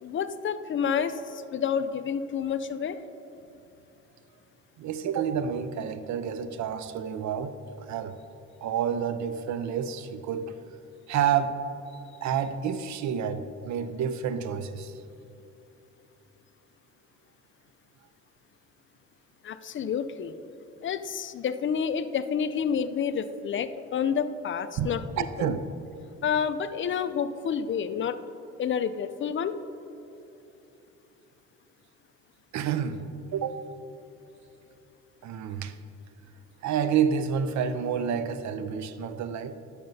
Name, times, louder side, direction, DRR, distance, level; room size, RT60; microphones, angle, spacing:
voice 1, 0.0-3.0 19.4-20.4 20.8-25.5 26.2-28.2 28.6-29.6, left 7 dB, 40° left, 12 dB, 0.4 m, -29 dB
voice 2, 4.8-8.2 8.6-10.5 11.1-11.6 12.2-14.9 24.8-24.9 25.2-25.7 32.5-33.0 33.3-33.7 35.2-35.7 36.6-39.6, right 7 dB, 70° right, 12 dB, 0.5 m, -29 dB
10.5 x 6.5 x 2.7 m, 2.9 s
cardioid pair, 90°, 30 cm